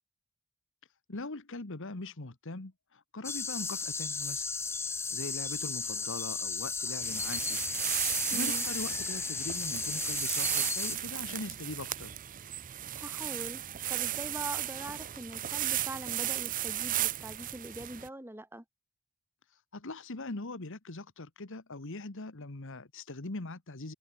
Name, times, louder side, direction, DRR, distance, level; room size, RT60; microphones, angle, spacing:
voice 1, 1.1-4.5 5.1-7.6 8.1-12.1 19.7-23.9, left 2 dB, 60° left, 1.5 m, -41 dB
sound 1, 3.2-11.0, left 4 dB, 10° left, 0.6 m, -34 dB
sound 2, 7.0-18.1, right 13 dB, 40° right, 0.6 m, -35 dB
voice 2, 8.3-8.6 12.9-13.6 13.9-18.6, right 1 dB, 10° right, 1.8 m, -42 dB
head